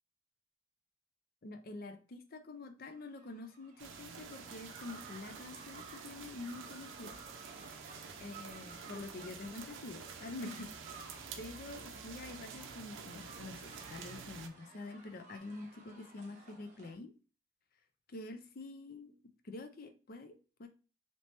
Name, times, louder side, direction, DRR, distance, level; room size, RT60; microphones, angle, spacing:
voice 1, 1.4-7.3 8.2-17.1 18.1-19.2 19.4-20.7, left 2 dB, 50° left, 0.5 m, -47 dB
sound 1, 2.9-16.9, right 3 dB, 40° right, 0.9 m, -56 dB
sound 2, 3.8-14.5, right 6 dB, 75° right, 0.5 m, -49 dB
2.9 x 2.9 x 3.2 m
head